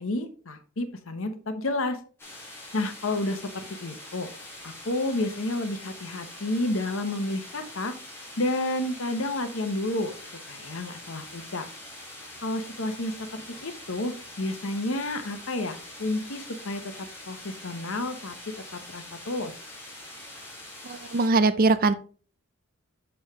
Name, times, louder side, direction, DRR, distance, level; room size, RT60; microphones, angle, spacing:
voice 1, 0.0-2.0 2.7-4.3 4.6-7.9 8.4-10.1 10.5-11.7 12.4-18.3 18.7-19.5, left 2 dB, 65° left, 8 dB, 1.0 m, -30 dB
sound 1, 2.2-21.3, left 1 dB, 10° left, 2.4 m, -44 dB
voice 2, 20.8-21.9, right 3 dB, 40° right, 13 dB, 0.4 m, -21 dB
7.1 x 5.5 x 3.2 m, 0.40 s
head